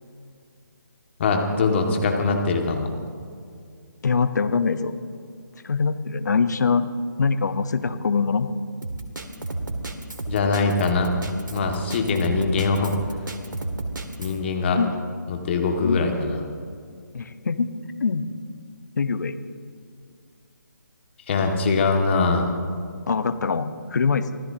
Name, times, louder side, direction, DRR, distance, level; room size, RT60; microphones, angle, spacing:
voice 1, 1.2-2.9 10.3-11.2 11.5-12.9 14.2-14.8 15.3-16.4 21.3-22.5, left 4 dB, 35° left, 3 dB, 2.1 m, -22 dB
voice 2, 4.0-5.0 5.6-6.9 7.2-8.5 14.8-14.9 15.8-16.0 17.1-17.7 18.0-18.3 19.0-19.4 23.1-24.4, left 5 dB, 60° left, 11 dB, 1.0 m, -23 dB
Drum kit, 8.8-14.4, right 2 dB, 75° right, 2.0 m, -31 dB
25.0 x 17.0 x 2.9 m, 2.3 s
figure-of-eight pair, 150°, 11 cm